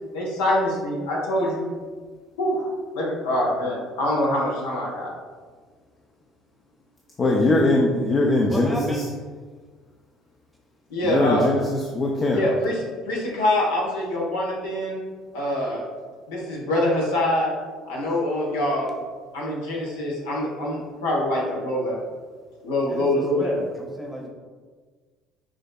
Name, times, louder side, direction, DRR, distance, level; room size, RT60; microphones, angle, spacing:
voice 1, 0.1-1.7 2.4-5.1 10.9-11.5 12.3-15.0 15.3-15.8 16.3-17.5 17.9-18.9 19.3-22.0 22.6-23.5, left 1 dB, 80° left, -3 dB, 0.9 m, -24 dB
voice 2, 7.2-9.0 11.0-12.4, left 2 dB, 35° left, -1 dB, 0.5 m, -21 dB
voice 3, 8.5-9.1 22.9-24.3, equal, ahead, -1 dB, 0.9 m, -32 dB
6.0 x 2.6 x 2.3 m, 1.5 s
hypercardioid pair, 65°, 0 cm